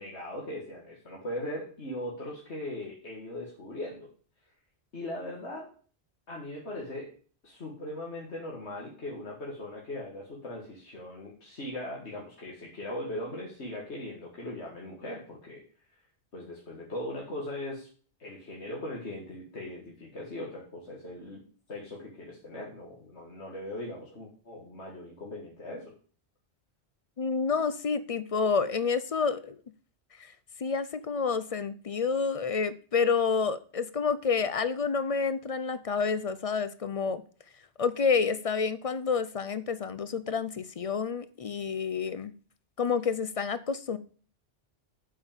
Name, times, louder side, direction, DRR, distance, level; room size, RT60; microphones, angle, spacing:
voice 1, 0.0-4.1 4.9-5.7 6.3-7.1 7.4-15.6 16.3-17.9 18.2-21.4 21.7-25.9, left 1 dB, 80° left, 2.1 m, -39 dB
voice 2, 27.2-29.6 30.2-30.3 30.6-37.2 37.8-42.3 42.8-44.0, left 5 dB, 50° left, 0.4 m, -29 dB
8.2 x 5.3 x 7.2 m
omnidirectional pair, 1.1 m